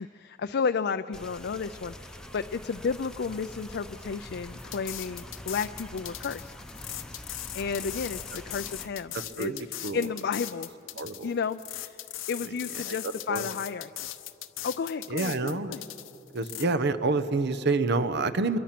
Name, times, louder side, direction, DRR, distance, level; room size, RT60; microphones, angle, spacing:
voice 1, 0.0-6.5 7.5-10.7 11.2-12.0 12.3-14.1 14.6-15.8, left 5 dB, 60° left, 9 dB, 0.4 m, -32 dB
sound 1, 1.1-8.9, left 1 dB, 5° left, 0.9 m, -45 dB
sound 2, 4.6-16.7, left 14 dB, 90° left, 0.9 m, -39 dB
voice 2, 9.4-10.0 11.0-11.3 12.9-13.0 13.3-13.5 15.1-15.7 16.3-18.6, right 3 dB, 60° right, 13 dB, 0.9 m, -27 dB
25.0 x 22.5 x 6.0 m, 2.9 s
head